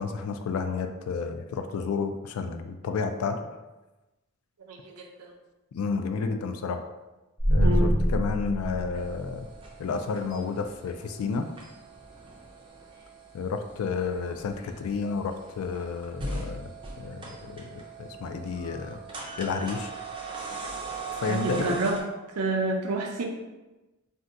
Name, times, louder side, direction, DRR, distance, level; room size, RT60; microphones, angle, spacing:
voice 1, 0.0-3.4 5.7-6.8 7.5-9.5 9.8-11.5 13.3-16.7 17.0-19.0 19.4-19.9 21.2-21.8, left 5 dB, 70° left, 7 dB, 0.3 m, -31 dB
voice 2, 4.7-5.3 7.6-7.9 21.3-22.0 22.4-23.2, right 2 dB, 90° right, 1 dB, 0.5 m, -28 dB
sound 1, 7.4-9.7, equal, 25° left, 0.8 m, -25 dB
sound 2, 8.9-22.0, right 3 dB, 20° right, 0.4 m, -40 dB
2.6 x 2.2 x 3.6 m, 1.1 s
head